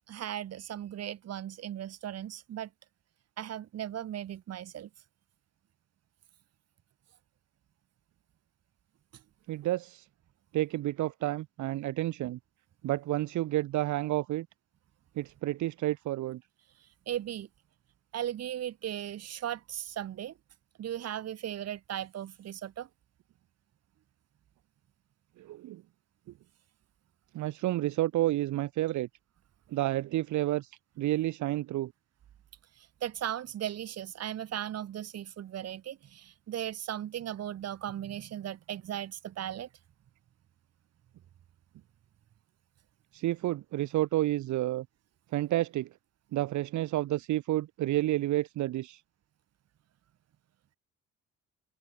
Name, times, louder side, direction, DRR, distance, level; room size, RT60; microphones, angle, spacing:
voice 1, 0.1-2.7 3.4-4.9 17.1-17.5 18.1-20.3 20.8-22.9 32.8-39.7, right 11 dB, 55° right, 1.0 m, -37 dB
voice 2, 9.5-10.1 10.5-12.4 12.8-14.5 15.2-16.4 25.4-25.8 27.3-29.1 29.7-31.9 43.1-44.9 45.3-45.9 46.3-49.0, right 15 dB, 70° right, 0.7 m, -30 dB
cardioid pair, 90°, 30 cm